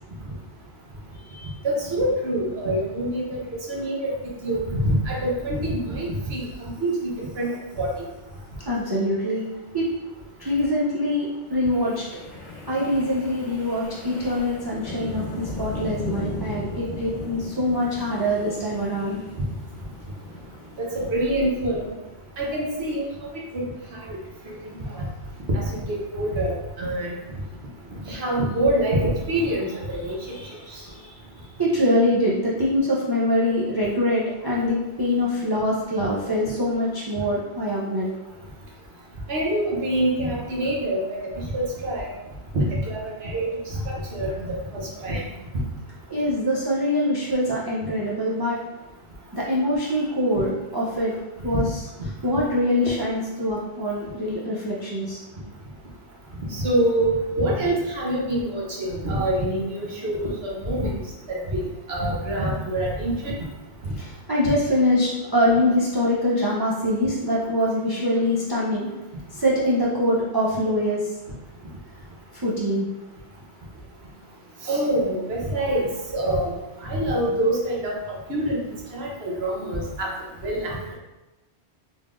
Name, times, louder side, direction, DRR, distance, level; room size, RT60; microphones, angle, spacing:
voice 1, 1.6-3.4 3.7-4.1 4.4-7.1 7.4-7.5 7.8-7.9 20.8-21.8 22.4-23.0 23.5-23.6 24.1-24.2 24.4-25.0 25.5-27.2 28.1-30.1 39.3-42.1 42.5-43.8 44.1-44.5 44.7-45.2 51.5-51.6 56.5-60.9 61.3-61.6 61.9-63.3 64.4-64.5 74.7-76.5 76.8-77.9 78.3-78.6 78.9-80.1 80.4-80.9, right 1 dB, 65° right, -3 dB, 1.1 m, -25 dB
voice 2, 8.7-9.4 9.7-9.9 10.4-12.0 12.7-19.2 30.0-38.1 46.1-48.6 49.3-51.1 51.4-51.8 52.2-55.2 64.0-68.9 69.3-71.1 72.3-72.9, left 1 dB, 35° right, -6 dB, 0.4 m, -24 dB
Wind, 11.7-21.9, left 2 dB, 45° left, 0.7 m, -37 dB
3.7 x 3.5 x 2.4 m, 1.0 s
omnidirectional pair, 1.2 m